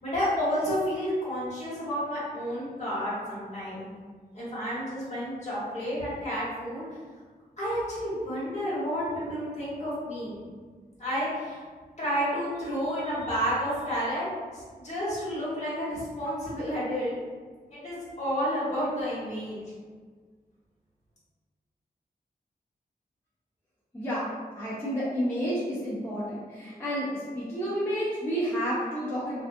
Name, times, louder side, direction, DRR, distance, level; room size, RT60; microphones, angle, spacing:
voice 1, 0.0-3.9 4.3-6.8 7.6-10.4 11.0-11.6 12.0-14.3 14.5-17.2 17.7-19.6, equal, 45° left, -9 dB, 1.3 m, -30 dB
voice 2, 23.9-24.3 24.6-29.4, equal, 15° left, -9 dB, 0.5 m, -30 dB
2.4 x 2.2 x 2.6 m, 1.5 s
wide cardioid pair, 110°, 16 cm